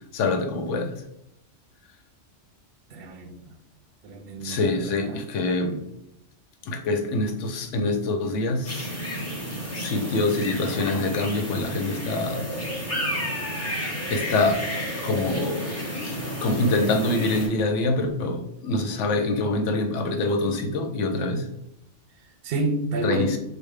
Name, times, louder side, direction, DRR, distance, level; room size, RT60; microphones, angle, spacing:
voice 1, 0.1-1.0 4.4-5.8 6.6-8.9 9.7-12.5 14.1-21.5 23.0-23.4, left 2 dB, 85° left, 0.9 m, -25 dB
voice 2, 2.9-3.6 4.0-5.2 22.4-23.4, right 2 dB, 60° right, 0.7 m, -29 dB
sound 1, 8.6-17.5, equal, 15° left, 0.7 m, -31 dB
5.1 x 2.1 x 3.2 m
omnidirectional pair, 1.2 m